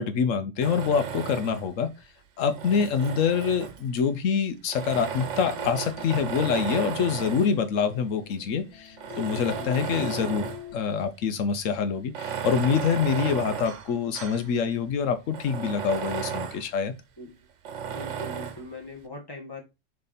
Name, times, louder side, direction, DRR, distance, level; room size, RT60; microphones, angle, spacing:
voice 1, 0.0-1.9 2.4-10.5 10.7-16.9, left 6 dB, 85° left, 1.1 m, -26 dB
Tools, 0.6-1.7 2.4-4.0 4.7-7.6 8.3-8.4 8.9-10.7 11.1-11.2 12.0-14.5 14.9-15.0 15.3-16.7 17.6-18.7, right 7 dB, 70° right, 1.1 m, -34 dB
sound 1, 5.6-10.8, left 10 dB, 65° left, 1.1 m, -43 dB
voice 2, 17.9-19.6, left 2 dB, 20° left, 1.6 m, -40 dB
6.9 x 3.3 x 4.1 m
omnidirectional pair, 1.3 m